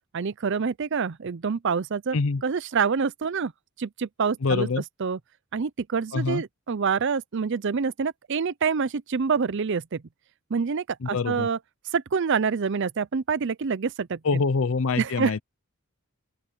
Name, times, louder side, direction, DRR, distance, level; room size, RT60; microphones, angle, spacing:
voice 1, 0.1-2.2 2.4-3.5 3.8-4.7 5.0-5.2 5.5-10.0 10.5-11.6 11.9-14.2 15.0-15.4, right 5 dB, 55° right, 0.5 m, -26 dB
voice 2, 4.4-4.8 6.1-6.4 11.0-11.5 14.2-15.4, left 4 dB, 60° left, 0.6 m, -25 dB
open air
head